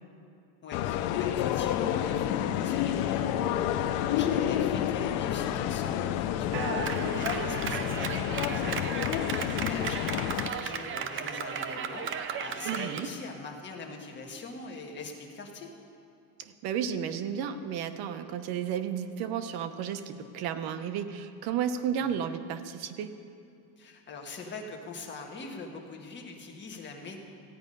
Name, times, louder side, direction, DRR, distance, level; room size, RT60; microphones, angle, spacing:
voice 1, 0.6-15.7 22.0-22.1 23.8-27.2, left 3 dB, 25° left, 1 dB, 1.5 m, -41 dB
sound 1, 0.7-10.5, left 11 dB, 80° left, 0.7 m, -29 dB
Clapping, 6.5-13.1, right 7 dB, 30° right, 0.5 m, -35 dB
voice 2, 6.5-7.0 12.6-13.1 16.4-23.1, right 8 dB, 60° right, 9 dB, 0.9 m, -33 dB
15.5 x 9.2 x 5.4 m, 2.6 s
cardioid pair, 150°, 43 cm